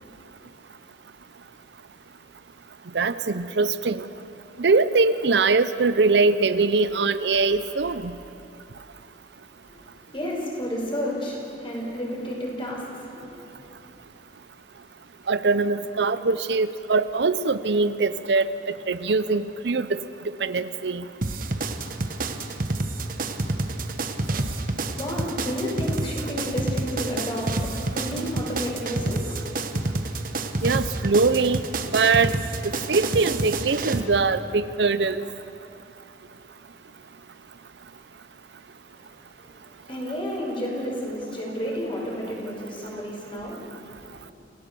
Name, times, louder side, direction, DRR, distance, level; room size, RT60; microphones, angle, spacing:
voice 1, 2.9-4.0 4.6-8.1 15.3-18.5 18.9-19.9 20.4-21.0 30.6-31.6 31.9-32.3 32.6-35.2, right 4 dB, 70° right, 13 dB, 0.6 m, -22 dB
voice 2, 10.1-13.3 13.6-13.7 24.9-29.4 29.8-29.9 39.9-44.2, equal, 30° left, -2 dB, 5.4 m, -31 dB
sound 1, 21.2-34.0, right 2 dB, 50° right, 1.2 m, -28 dB
28.0 x 17.0 x 6.9 m, 2.8 s
head